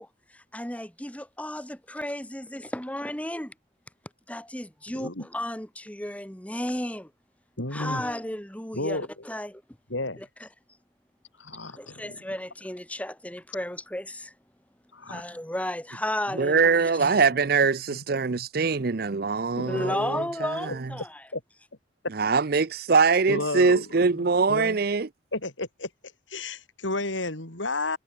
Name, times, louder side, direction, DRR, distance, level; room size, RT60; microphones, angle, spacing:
voice 1, 0.0-3.5 4.3-7.1 7.7-9.6 10.2-10.5 11.6-14.4 15.0-17.3 19.7-21.3, left 1 dB, 5° left, 2.4 m, -34 dB
voice 2, 7.6-8.0 8.8-9.1 9.9-10.2 11.4-12.1 14.9-15.2 17.0-17.1 18.4-18.5 19.6-20.0 21.3-21.4 23.3-24.1 24.5-24.8 25.3-25.9 26.3-28.0, left 2 dB, 90° left, 5.7 m, -32 dB
voice 3, 16.4-20.2 22.1-25.1, right 4 dB, 55° right, 0.6 m, -22 dB
head